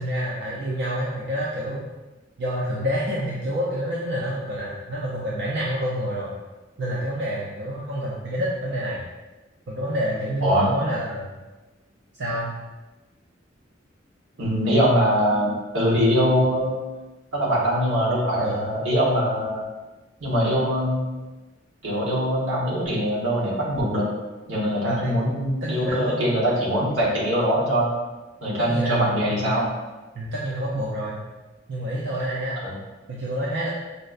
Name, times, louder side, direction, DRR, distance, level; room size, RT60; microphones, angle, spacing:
voice 1, 0.0-1.8 2.4-6.3 6.8-9.0 9.7-11.3 12.2-12.5 18.4-18.7 24.8-25.2 25.6-26.3 28.6-29.5 30.1-31.2 31.7-32.6 33.1-33.7, equal, 60° right, -6 dB, 0.5 m, -28 dB
voice 2, 14.4-16.8 17.3-19.6 20.2-21.1 21.8-24.1 24.5-27.9 28.4-29.7 32.6-32.7, equal, 90° right, -5 dB, 1.1 m, -22 dB
5.1 x 2.1 x 2.4 m, 1.2 s
head